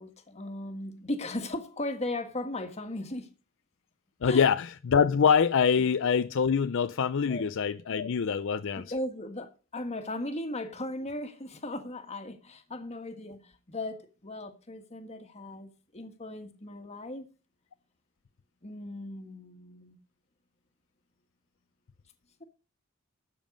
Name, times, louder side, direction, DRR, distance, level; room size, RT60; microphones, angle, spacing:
voice 1, 0.0-3.3 4.2-4.4 7.2-7.5 8.8-17.2 18.6-20.0, left 1 dB, 30° left, 1.6 m, -37 dB
voice 2, 4.2-8.8, left 6 dB, 65° left, 0.5 m, -25 dB
12.5 x 7.4 x 5.2 m
head